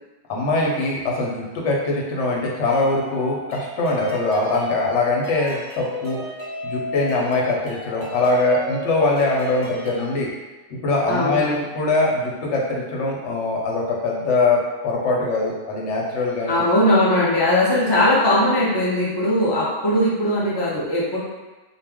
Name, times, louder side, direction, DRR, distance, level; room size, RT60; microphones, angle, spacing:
voice 1, 0.3-6.2 6.6-10.3 10.7-16.6, left 2 dB, 80° left, -2 dB, 0.9 m, -22 dB
sound 1, 2.7-10.1, left 3 dB, 15° right, 0.6 m, -35 dB
voice 2, 11.1-11.6 16.5-21.2, left 1 dB, 35° left, -7 dB, 0.4 m, -19 dB
2.3 x 2.1 x 3.4 m, 1.2 s
omnidirectional pair, 1.2 m